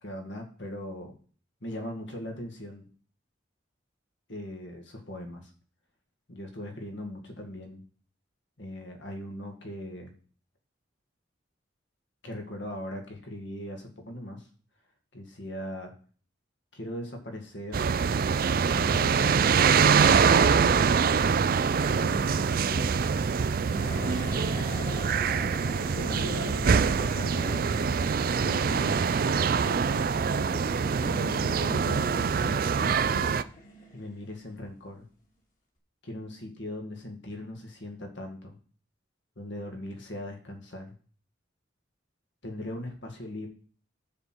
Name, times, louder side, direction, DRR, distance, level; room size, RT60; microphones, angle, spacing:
voice 1, 0.0-1.1 1.6-2.9 4.3-5.5 6.3-7.8 8.6-10.1 12.2-14.5 15.1-15.9 16.7-17.9 18.7-19.7 21.9-23.0 23.7-24.5 25.9-27.7 28.3-30.2 31.0-33.4 33.9-35.1 36.0-38.6 39.4-40.9 42.4-43.5, left 1 dB, 65° left, 3 dB, 2.0 m, -39 dB
sound 1, 17.7-33.4, right 6 dB, 45° right, 0.4 m, -24 dB
sound 2, 23.6-35.0, left 1 dB, 45° left, 2.3 m, -45 dB
9.8 x 4.5 x 7.7 m, 0.43 s
head